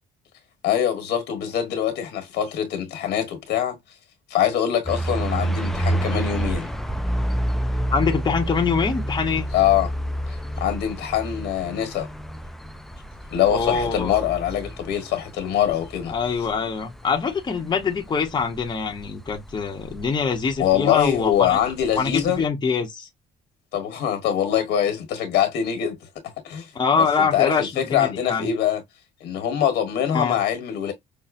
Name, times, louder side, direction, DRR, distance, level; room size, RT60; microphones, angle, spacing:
voice 1, 0.6-3.8 4.3-6.7 9.5-9.9 10.6-12.1 13.3-16.1 20.6-22.4 23.7-26.0 26.4-26.7 26.9-28.8 29.2-30.9, left 10 dB, 80° left, 1.3 m, -23 dB
sound 1, 4.8-22.5, right 1 dB, ahead, 0.3 m, -29 dB
voice 2, 7.9-9.4 13.5-14.2 16.1-21.6 22.0-23.1 26.7-28.5 30.1-30.4, left 5 dB, 25° left, 0.8 m, -24 dB
5.4 x 2.1 x 2.5 m
cardioid pair, 110°, 17 cm